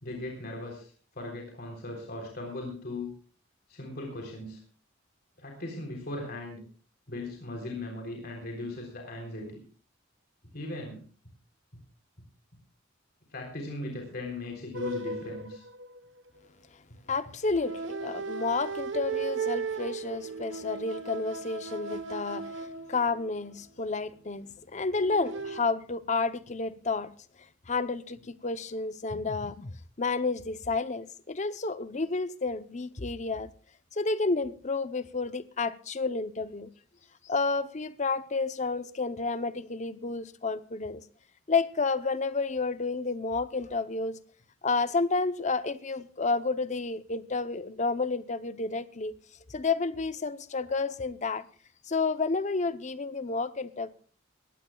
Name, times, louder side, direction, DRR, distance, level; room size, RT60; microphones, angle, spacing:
voice 1, 0.0-3.1 3.7-4.6 5.4-6.6 7.1-9.6 10.5-11.0 13.3-15.6, left 2 dB, 50° left, 3.6 m, -38 dB
sound 1, 14.7-16.4 17.5-23.5 25.0-25.6, right 4 dB, 65° right, 1.1 m, -36 dB
voice 2, 17.1-27.1 27.7-29.7 30.0-33.5 33.9-36.7 37.2-41.0 41.5-44.2 44.6-49.1 49.5-51.4 51.9-53.9, left 3 dB, 35° left, 0.7 m, -30 dB
22.0 x 17.0 x 2.3 m
head